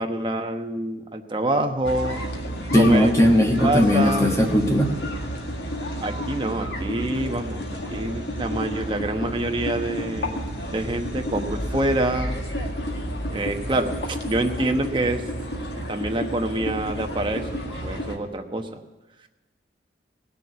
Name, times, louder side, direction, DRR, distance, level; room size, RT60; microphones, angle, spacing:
voice 1, 0.0-2.2 2.8-3.1 3.6-4.3 6.0-12.4 13.3-15.2 15.7-18.8, right 1 dB, 30° right, 4 dB, 1.0 m, -26 dB
sound 1, 1.8-18.2, equal, 70° left, 1.8 m, -31 dB
voice 2, 2.7-4.9, left 1 dB, 15° left, 2 dB, 1.2 m, -18 dB
17.5 x 6.8 x 9.3 m, 1.1 s
head